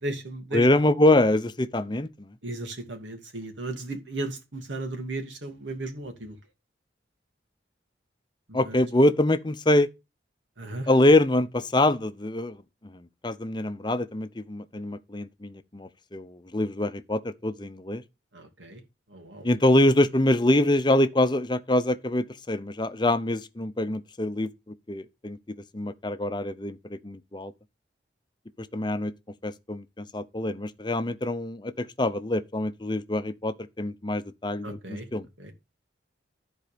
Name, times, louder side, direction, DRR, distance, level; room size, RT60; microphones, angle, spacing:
voice 1, 0.0-0.7 2.4-6.4 8.5-8.8 10.6-10.9 18.3-18.8 19.1-19.5 34.6-35.1 35.4-35.5, right 2 dB, 90° right, 2.5 m, -35 dB
voice 2, 0.5-2.3 8.5-9.9 10.9-12.6 12.8-18.0 19.4-24.5 24.9-27.5 28.6-29.1 29.4-35.3, left 1 dB, 25° left, 0.7 m, -25 dB
13.5 x 4.5 x 5.1 m
head